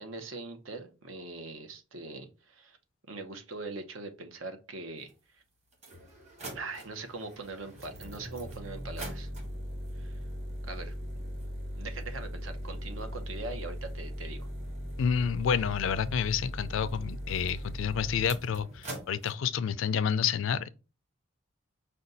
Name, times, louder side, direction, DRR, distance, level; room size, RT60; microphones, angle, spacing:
voice 1, 0.0-2.8 3.1-5.4 6.5-9.3 10.0-10.2 10.6-10.9 11.8-14.5, right 3 dB, 85° right, 0.8 m, -41 dB
sound 1, 5.1-5.2 5.7-19.3, equal, 35° right, 1.3 m, -39 dB
voice 2, 15.0-20.7, left 7 dB, 75° left, 0.4 m, -29 dB
5.1 x 2.3 x 4.0 m
head